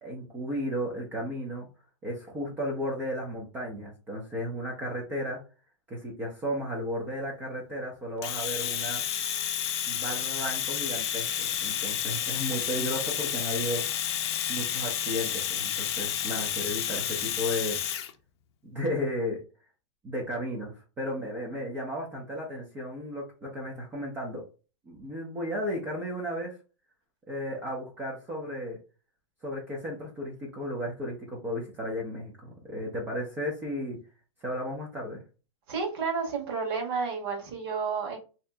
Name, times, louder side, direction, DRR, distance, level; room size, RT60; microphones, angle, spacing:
voice 1, 0.0-1.7 2.0-5.4 5.9-9.0 9.9-14.1 14.5-17.8 18.6-19.4 20.0-24.4 24.9-26.6 27.3-28.8 29.4-34.0 34.4-35.2, equal, 10° right, -3 dB, 0.6 m, -34 dB
Domestic sounds home sounds, 8.2-18.1, left 10 dB, 55° left, 0.6 m, -31 dB
voice 2, 35.7-38.2, right 5 dB, 50° right, 0 dB, 1.4 m, -31 dB
3.0 x 2.8 x 3.3 m, 0.33 s
supercardioid pair, 170°, 16 cm